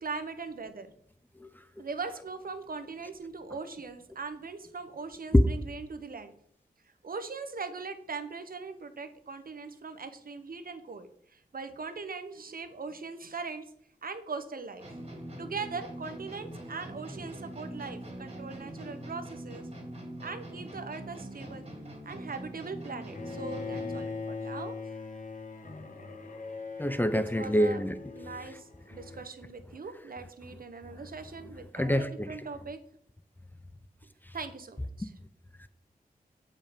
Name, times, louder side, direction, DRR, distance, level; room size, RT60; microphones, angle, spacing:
voice 1, 0.0-0.9 1.8-6.3 7.0-13.6 14.0-14.9 15.4-19.7 20.2-21.7 22.0-24.7 27.1-27.8 28.1-32.8 34.3-35.1, right 4 dB, 65° right, 9 dB, 1.1 m, -40 dB
sound 1, 14.8-24.2, right 1 dB, 40° right, 3.6 m, -43 dB
Bowed string instrument, 23.1-29.2, left 4 dB, 55° left, 1.4 m, -40 dB
voice 2, 26.8-28.0 31.7-32.3, equal, 10° left, 11 dB, 0.7 m, -25 dB
8.9 x 5.6 x 5.1 m, 0.66 s
cardioid pair, 60°, 16 cm